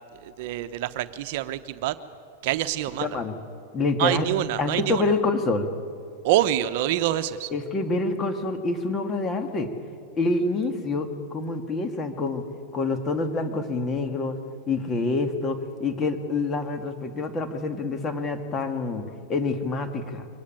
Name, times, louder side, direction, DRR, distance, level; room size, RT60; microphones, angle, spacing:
voice 1, 0.2-1.9 2.4-3.1 4.0-5.0 6.2-7.5, right 13 dB, 60° right, 11 dB, 0.9 m, -26 dB
voice 2, 3.0-3.3 3.7-4.3 4.6-5.7 7.5-9.7 10.2-12.4 12.7-14.4 14.7-20.3, left 3 dB, 25° left, 7 dB, 2.0 m, -27 dB
23.5 x 18.5 x 9.1 m, 2.5 s
supercardioid pair, 135°, 0 cm